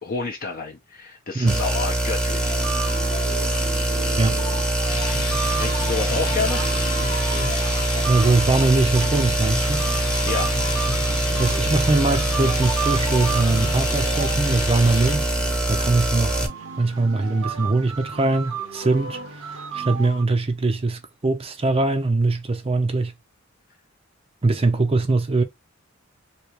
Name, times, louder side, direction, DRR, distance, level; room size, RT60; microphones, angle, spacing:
voice 1, 0.0-2.6 5.6-6.6 10.3-10.5, left 4 dB, 45° left, 0.6 m, -29 dB
sound 1, 1.5-16.5, right 1 dB, 5° left, 0.8 m, -23 dB
sound 2, 2.4-20.2, right 5 dB, 90° right, 0.9 m, -34 dB
sound 3, 4.8-15.2, left 4 dB, 90° left, 1.1 m, -32 dB
voice 2, 8.0-9.9 11.4-15.3 15.7-16.5 16.8-23.1 24.4-25.4, right 3 dB, 25° right, 0.5 m, -22 dB
3.2 x 2.8 x 2.9 m
head